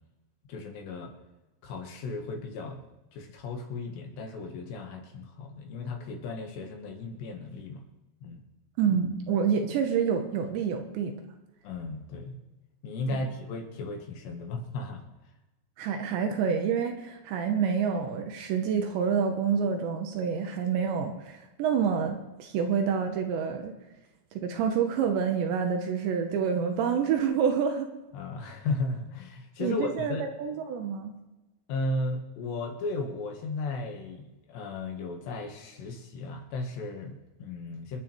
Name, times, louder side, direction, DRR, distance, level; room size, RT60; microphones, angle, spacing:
voice 1, 0.5-1.1 1.6-2.8 3.1-7.9 8.2-8.4 11.6-12.4 12.8-15.0 28.1-30.3 31.7-38.0, left 2 dB, 70° left, 2 dB, 3.3 m, -35 dB
voice 2, 8.8-11.1 13.1-13.2 15.8-23.7 24.3-27.9 29.6-31.1, right 7 dB, 75° right, 4 dB, 3.0 m, -28 dB
27.5 x 10.5 x 3.3 m, 1.1 s
omnidirectional pair, 5.7 m